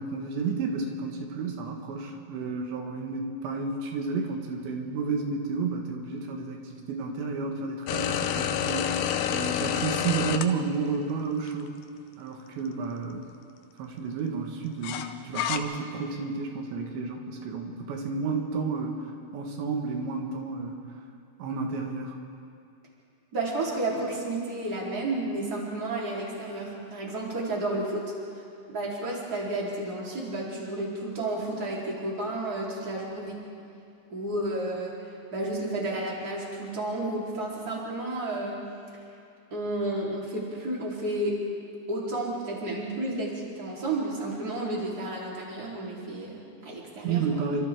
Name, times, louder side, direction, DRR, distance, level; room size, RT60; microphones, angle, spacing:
voice 1, 0.0-11.7 12.2-13.3 13.8-20.8 21.4-22.2 47.0-47.6, right 4 dB, 90° right, 2 dB, 4.0 m, -31 dB
sound 1, 7.9-10.4 11.5-11.6 14.8-15.6, left 10 dB, 75° left, 2.8 m, -28 dB
voice 2, 23.3-28.0 28.7-33.4 34.1-38.6 39.5-41.4 41.9-47.2, right 2 dB, 20° right, -4 dB, 4.0 m, -31 dB
28.5 x 26.0 x 3.8 m, 2.5 s
omnidirectional pair, 5.0 m